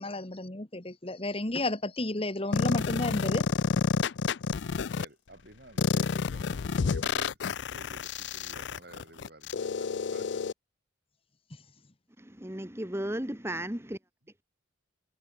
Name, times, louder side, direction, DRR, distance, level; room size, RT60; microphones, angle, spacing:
voice 1, 0.0-3.4, left 2 dB, 30° left, 1.6 m, -32 dB
sound 1, 2.5-5.0 5.8-10.5, left 5 dB, 65° left, 0.4 m, -29 dB
voice 2, 4.9-10.5, right 2 dB, 55° right, 5.1 m, -52 dB
voice 3, 12.2-14.0, right 1 dB, 15° right, 1.6 m, -35 dB
head